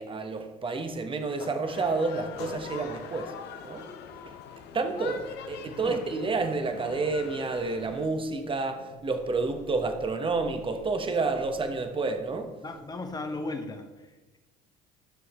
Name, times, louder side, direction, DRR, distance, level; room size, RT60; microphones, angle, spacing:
voice 1, 0.0-3.3 3.6-3.9 4.2-4.4 4.7-12.6, right 3 dB, 25° right, 6 dB, 1.1 m, -30 dB
sound 1, 1.1-2.1 2.4-3.0 4.1-13.5, left 4 dB, 80° left, 1.6 m, -50 dB
sound 2, 1.7-8.1, left 8 dB, 60° left, 0.8 m, -43 dB
voice 2, 12.6-14.1, left 2 dB, 20° left, 5 dB, 1.4 m, -36 dB
12.5 x 6.3 x 3.1 m, 1.2 s
hypercardioid pair, 65°, 19 cm